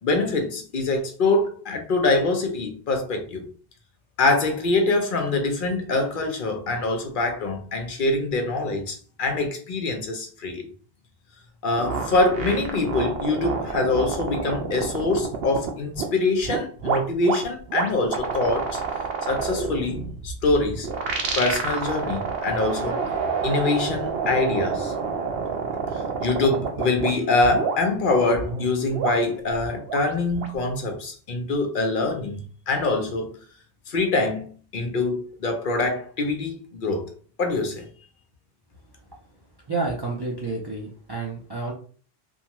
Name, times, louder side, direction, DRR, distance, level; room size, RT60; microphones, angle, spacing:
voice 1, 0.0-3.5 4.2-10.7 11.6-18.8 19.3-20.9 21.4-23.1 23.4-24.9 26.2-33.3 33.9-37.1 37.4-37.9, left 3 dB, 60° left, 0.7 m, -24 dB
sound 1, 11.8-16.0 16.4-27.1 27.4-27.8 28.3-30.6, right 5 dB, 70° right, 0.8 m, -28 dB
voice 2, 39.7-41.7, right 3 dB, 40° right, 0.4 m, -29 dB
2.5 x 2.3 x 2.9 m
omnidirectional pair, 1.0 m